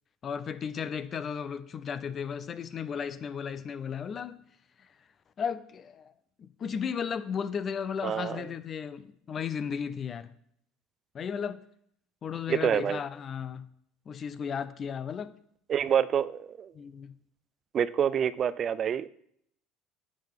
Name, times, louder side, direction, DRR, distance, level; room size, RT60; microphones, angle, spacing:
voice 1, 0.2-4.4 4.8-4.9 5.4-6.1 6.4-10.3 11.1-11.6 12.2-13.7 14.1-15.4 16.7-17.1, left 7 dB, 40° left, 0.6 m, -35 dB
voice 2, 8.0-8.4 12.5-13.0 15.7-16.7 17.7-19.1, right 8 dB, 45° right, 0.4 m, -27 dB
10.0 x 7.5 x 3.6 m
supercardioid pair, 85°, 0 cm